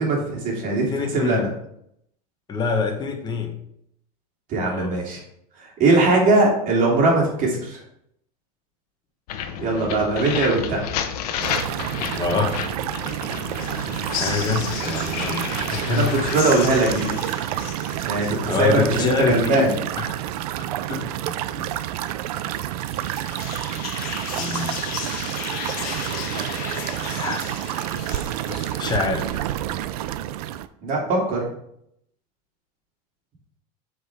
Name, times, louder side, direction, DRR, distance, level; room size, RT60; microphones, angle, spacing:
voice 1, 0.0-1.5 4.5-5.2 5.6-7.8 9.6-10.9 15.9-17.1 18.0-19.8 20.9-21.6 30.8-31.4, right 2 dB, 45° right, -2 dB, 2.9 m, -21 dB
voice 2, 0.9-1.5 2.5-3.6 4.6-5.0 12.1-12.6 14.1-16.1 18.5-20.2 20.6-21.0 21.9-22.2 24.3-24.8 27.2-27.5 28.4-29.4, left 5 dB, 20° left, 2 dB, 1.3 m, -26 dB
sound 1, 9.3-19.1, left 8 dB, 85° left, 0.9 m, -33 dB
sound 2, 11.4-30.7, right 13 dB, 80° right, 0.5 m, -29 dB
sound 3, 13.0-19.0 22.5-29.5, left 6 dB, 50° left, 1.3 m, -34 dB
7.8 x 5.1 x 3.5 m, 0.73 s
supercardioid pair, 135°, 19 cm